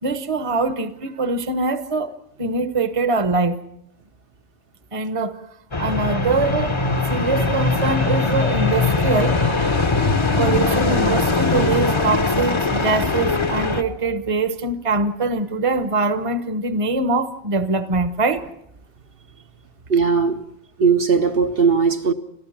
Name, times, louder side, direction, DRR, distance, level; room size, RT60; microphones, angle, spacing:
voice 1, 0.0-3.6 4.9-5.4 5.8-6.7 7.1-9.4 10.2-18.5, right 3 dB, 30° right, 1.0 m, -23 dB
sound 1, 5.7-13.8, left 3 dB, 30° left, 0.9 m, -20 dB
voice 2, 19.9-20.4 20.8-22.1, right 5 dB, 60° right, 1.2 m, -18 dB
29.5 x 13.0 x 7.3 m
omnidirectional pair, 1.1 m